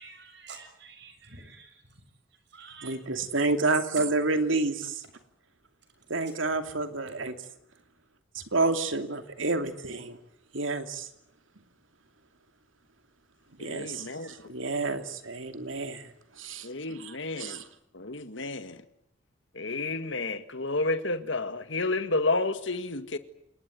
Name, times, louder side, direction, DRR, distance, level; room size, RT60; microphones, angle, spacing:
voice 1, 0.0-1.8 2.5-3.0 4.0-4.1 7.0-7.3, right 3 dB, 60° right, 6.8 m, -47 dB
voice 2, 2.8-5.0 6.1-7.3 8.3-10.2 10.5-11.1 13.6-16.1 16.4-17.7, right 3 dB, 80° right, 2.7 m, -29 dB
voice 3, 13.6-14.3 16.6-17.6 17.9-18.8 19.6-23.2, left 2 dB, 70° left, 1.9 m, -31 dB
28.5 x 20.0 x 9.4 m
head